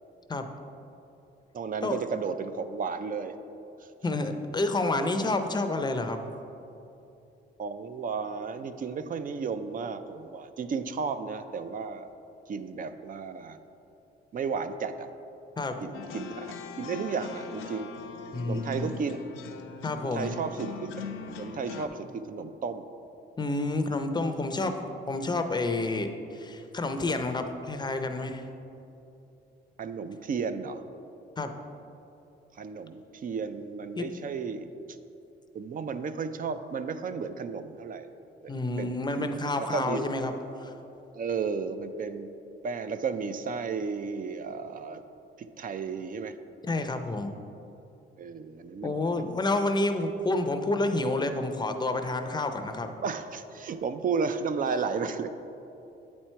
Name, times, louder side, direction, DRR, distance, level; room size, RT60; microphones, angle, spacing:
voice 1, 1.5-3.3 7.6-12.1 12.5-13.6 14.3-15.1 15.8-17.9 18.4-19.2 20.0-20.9 21.3-22.9 29.8-30.8 32.5-35.0 35.5-38.1 38.4-40.0 41.1-42.3 42.6-45.0 45.4-46.4 48.2-49.3 53.0-55.3, right 5 dB, 45° right, 10 dB, 0.4 m, -33 dB
voice 2, 4.0-6.2 15.6-15.7 18.3-19.0 19.8-20.3 23.4-24.8 25.1-28.4 31.4-31.5 34.0-34.1 38.5-40.3 40.6-40.7 46.6-47.4 48.8-52.9, left 2 dB, 20° left, 7 dB, 0.5 m, -29 dB
sound 1, 15.9-21.9, left 6 dB, 85° left, 0.6 m, -41 dB
8.4 x 4.4 x 4.4 m, 2.8 s
cardioid pair, 90°, 20 cm